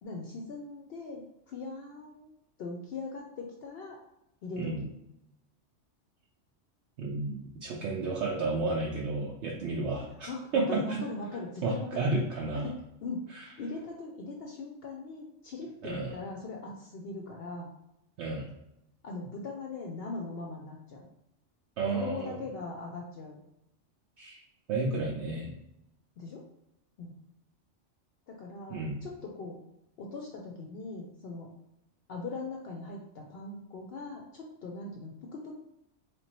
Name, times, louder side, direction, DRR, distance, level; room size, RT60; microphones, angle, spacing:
voice 1, 0.0-2.3 2.6-4.0 4.4-4.9 10.3-12.1 12.5-13.3 13.6-17.7 19.0-21.0 21.9-23.4 26.2-26.4 27.0-27.1 28.3-29.6 30.0-31.5 32.1-35.5, left 3 dB, 65° left, 0 dB, 0.7 m, -40 dB
voice 2, 7.0-11.0 11.6-12.7 13.3-13.4 15.8-16.1 18.2-18.5 21.8-22.3 24.2-24.4 24.7-25.5 28.7-29.0, right 3 dB, 75° right, -3 dB, 0.9 m, -32 dB
3.5 x 2.9 x 2.9 m, 0.85 s
omnidirectional pair, 1.2 m